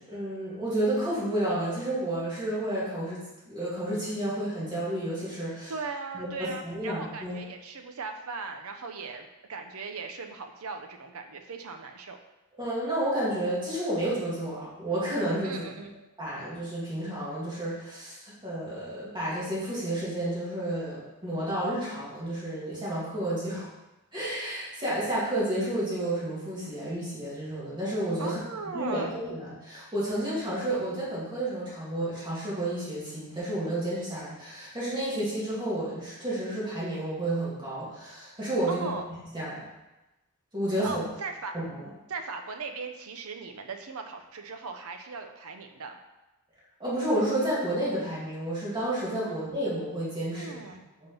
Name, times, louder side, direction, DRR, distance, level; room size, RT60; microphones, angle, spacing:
voice 1, 0.0-5.7 6.1-7.4 12.6-15.6 16.2-23.7 24.1-28.4 28.7-39.6 40.5-41.0 41.5-41.9 46.8-50.5, right 1 dB, 20° right, -9 dB, 2.4 m, -31 dB
voice 2, 5.7-12.2 15.4-15.9 28.2-29.1 38.7-39.0 40.8-41.5 42.1-46.0 49.2-49.4 50.3-50.8, right 4 dB, 75° right, 5 dB, 0.7 m, -38 dB
5.9 x 3.7 x 5.2 m, 1.0 s
head